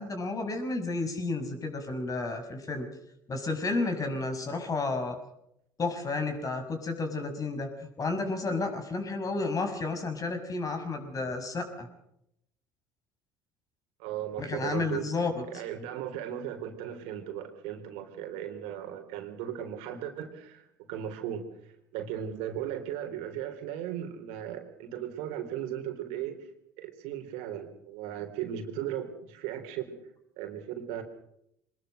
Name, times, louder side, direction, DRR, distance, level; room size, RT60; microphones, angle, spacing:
voice 1, 0.0-2.9 3.3-5.2 5.8-11.9 14.4-15.4, left 3 dB, 30° left, 7 dB, 5.9 m, -32 dB
voice 2, 14.0-15.1 15.5-21.5 21.9-26.4 26.8-30.0 30.4-31.0, right 10 dB, 65° right, 6 dB, 3.6 m, -37 dB
24.5 x 20.5 x 6.5 m, 0.76 s
hypercardioid pair, 65°, 11 cm